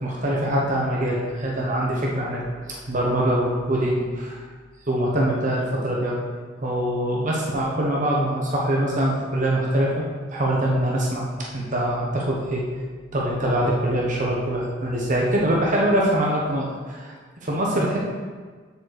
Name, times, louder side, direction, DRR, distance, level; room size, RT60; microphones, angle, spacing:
voice 1, 0.0-2.4 2.9-4.4 4.9-6.2 6.6-10.0 10.3-11.3 11.5-12.6 13.1-17.2 17.4-18.0, right 1 dB, 45° right, -3 dB, 1.2 m, -23 dB
6.9 x 4.4 x 6.6 m, 1.5 s
head